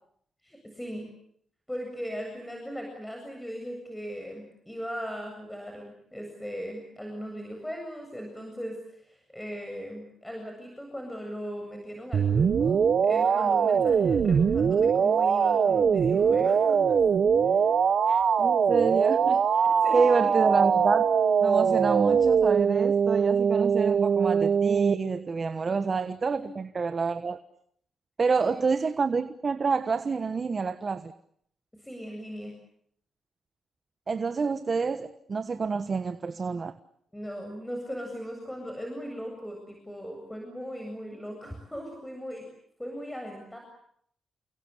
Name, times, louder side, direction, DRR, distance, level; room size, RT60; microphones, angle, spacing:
voice 1, 0.4-1.1 1.7-17.0 17.4-17.6 19.6-20.4 25.7-25.9 26.4-26.5 28.2-28.6 31.8-32.6 37.1-42.4 42.8-43.6, equal, 5° left, 7.7 m, -38 dB
sound 1, 12.1-24.9, right 6 dB, 60° right, 1.6 m, -22 dB
voice 2, 18.1-19.6 19.9-21.0 21.4-27.4 28.2-31.1 34.1-36.7, right 4 dB, 40° right, 1.3 m, -28 dB
30.0 x 22.0 x 8.4 m
cardioid pair, 80°, 0 cm